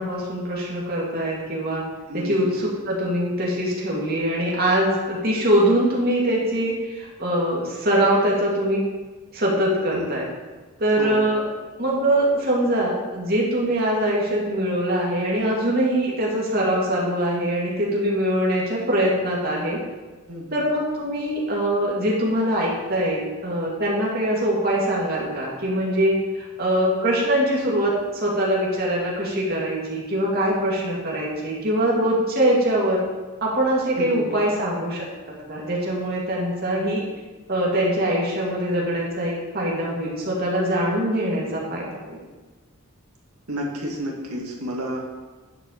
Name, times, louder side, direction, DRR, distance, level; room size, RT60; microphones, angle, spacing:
voice 1, 0.0-1.8 2.1-8.8 9.3-10.3 10.8-11.4 11.8-19.8 20.5-33.0 33.4-35.1 35.5-37.0 37.5-42.2, right 1 dB, 45° right, -4 dB, 2.4 m, -23 dB
voice 2, 2.1-2.6 9.9-10.1 10.9-11.2 20.3-20.8 34.0-34.2 43.5-45.1, equal, 90° right, -1 dB, 2.0 m, -31 dB
10.0 x 4.5 x 6.6 m, 1.3 s
head